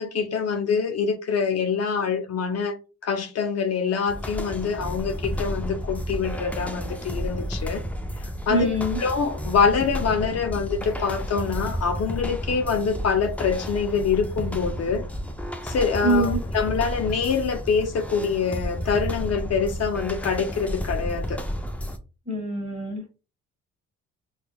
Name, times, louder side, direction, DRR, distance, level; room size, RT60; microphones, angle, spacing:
voice 1, 0.0-2.8 3.0-7.8 8.2-8.7 9.0-15.0 15.6-21.4, left 5 dB, 55° left, 0.7 m, -25 dB
sound 1, 4.1-22.0, equal, 5° left, 0.5 m, -32 dB
voice 2, 8.5-9.0 16.0-16.4 22.3-23.0, right 1 dB, 20° right, 1.4 m, -24 dB
5.0 x 2.3 x 2.3 m
cardioid pair, 90°, 30 cm